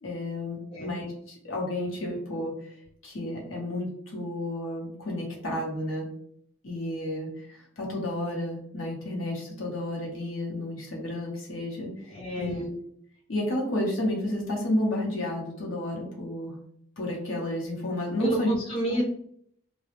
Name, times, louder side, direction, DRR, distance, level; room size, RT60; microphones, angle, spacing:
voice 1, 0.0-2.8 3.0-6.1 6.6-12.7 13.3-16.5 17.0-18.5 18.9-19.0, left 1 dB, 80° left, -2 dB, 0.9 m, -31 dB
voice 2, 12.1-12.7 18.2-19.0, right 2 dB, 25° left, -3 dB, 0.5 m, -30 dB
2.3 x 2.0 x 3.0 m, 0.66 s
head